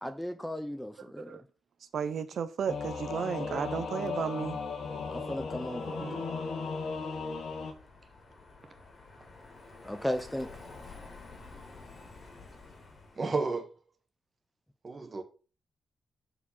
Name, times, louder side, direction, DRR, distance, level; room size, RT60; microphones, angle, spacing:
voice 1, 0.0-1.4 5.1-6.2 9.8-10.5, left 1 dB, 5° left, 0.5 m, -36 dB
voice 2, 1.9-4.6, right 7 dB, 60° right, 0.6 m, -33 dB
Singing / Musical instrument, 2.7-7.7, left 4 dB, 90° left, 1.9 m, -36 dB
Car passing by, 5.0-13.4, left 3 dB, 40° left, 2.2 m, -51 dB
voice 3, 13.2-13.7 14.8-15.2, right 3 dB, 30° right, 1.3 m, -32 dB
6.8 x 4.9 x 5.4 m
wide cardioid pair, 165°, 0 cm